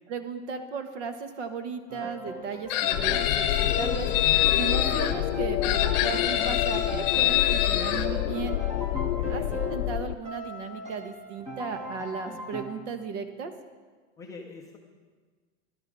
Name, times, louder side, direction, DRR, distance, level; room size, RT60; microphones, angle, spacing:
voice 1, 0.1-4.1 4.5-8.6 9.3-13.5, right 5 dB, 60° right, 8 dB, 1.5 m, -36 dB
Piano, 1.9-10.0 10.2-12.6, equal, 15° right, 1.3 m, -39 dB
Chicken rooster, 2.7-5.1 5.6-8.1, left 12 dB, 45° left, 0.9 m, -26 dB
sound 1, 2.9-10.1, left 14 dB, 65° left, 0.5 m, -29 dB
voice 2, 9.0-9.5 14.2-14.8, left 3 dB, 10° left, -3 dB, 0.4 m, -44 dB
12.5 x 12.0 x 6.1 m, 1.5 s
supercardioid pair, 165°, 40 cm